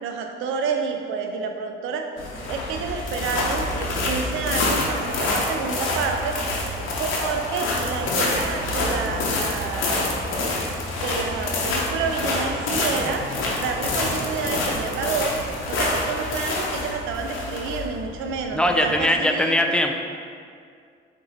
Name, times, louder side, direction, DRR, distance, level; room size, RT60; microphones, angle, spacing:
voice 1, 0.0-2.1 2.5-6.4 7.0-10.1 11.0-13.2 13.6-15.3 15.7-19.6, right 5 dB, 90° right, 4 dB, 0.5 m, -29 dB
sound 1, 2.2-19.1, left 2 dB, 80° left, 0.8 m, -27 dB
sound 2, 10.2-16.8, equal, 55° left, 0.9 m, -40 dB
voice 2, 18.5-19.9, left 1 dB, 5° left, 3 dB, 0.3 m, -20 dB
4.2 x 2.7 x 3.9 m, 2.2 s
cardioid pair, 90°, 20 cm